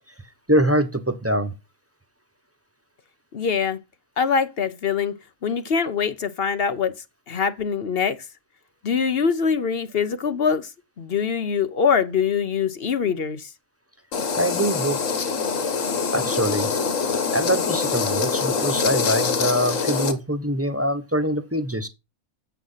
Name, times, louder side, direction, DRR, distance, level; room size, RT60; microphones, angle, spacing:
voice 1, 0.5-1.5 14.3-15.0 16.1-16.7 17.3-21.9, equal, 10° right, 0.9 m, -23 dB
voice 2, 3.3-3.8 4.2-5.2 5.4-6.9 7.3-8.2 8.8-10.7 11.0-13.5, left 6 dB, 55° left, 1.0 m, -23 dB
sound 1, 14.1-20.1, left 5 dB, 85° left, 1.7 m, -24 dB
8.2 x 7.7 x 5.6 m
omnidirectional pair, 1.3 m